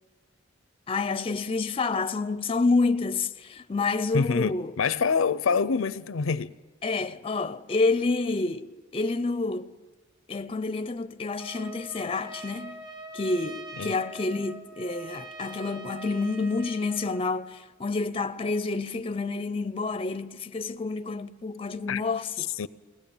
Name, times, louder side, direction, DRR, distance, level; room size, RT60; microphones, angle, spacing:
voice 1, 0.9-4.7 6.8-9.8 10.3-12.8 13.1-22.5, left 3 dB, 30° left, 0.5 m, -28 dB
voice 2, 4.1-6.5 13.8-14.0 21.9-22.0 22.4-22.7, left 5 dB, 80° left, 0.5 m, -26 dB
Trumpet, 11.4-17.3, right 2 dB, 65° right, 1.9 m, -43 dB
21.5 x 18.0 x 7.1 m
head